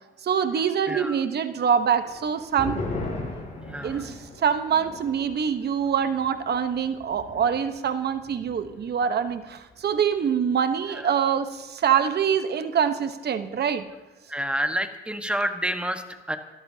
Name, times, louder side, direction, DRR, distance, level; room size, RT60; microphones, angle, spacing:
voice 1, 0.2-2.8 3.3-3.4 3.8-13.8, right 7 dB, 55° right, 10 dB, 1.1 m, -25 dB
sound 1, 2.0-8.9 9.2-9.3 9.7-10.2, left 2 dB, 35° left, 6.6 m, -38 dB
voice 2, 3.7-4.0 11.0-11.1 14.3-16.4, equal, 5° right, 6 dB, 1.4 m, -29 dB
28.0 x 13.5 x 2.9 m, 1.2 s
cardioid pair, 90°, 20 cm